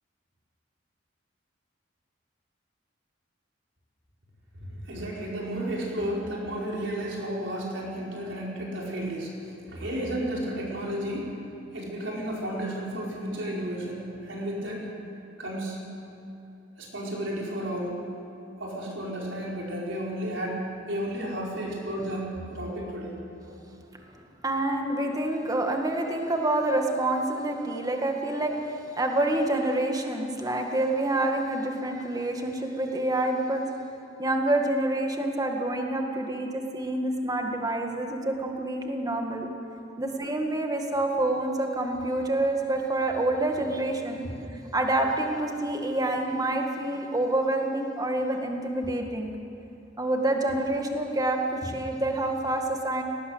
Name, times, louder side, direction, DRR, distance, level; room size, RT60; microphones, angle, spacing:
voice 1, 4.8-11.3 11.7-14.9 15.4-15.8 16.8-18.0 18.6-23.2, right 1 dB, 70° right, -3 dB, 5.1 m, -32 dB
voice 2, 24.4-33.7 34.2-39.5 40.0-44.3 44.7-49.3 50.0-53.0, right 1 dB, 20° right, 3 dB, 2.0 m, -27 dB
19.0 x 18.5 x 8.1 m, 2.8 s
head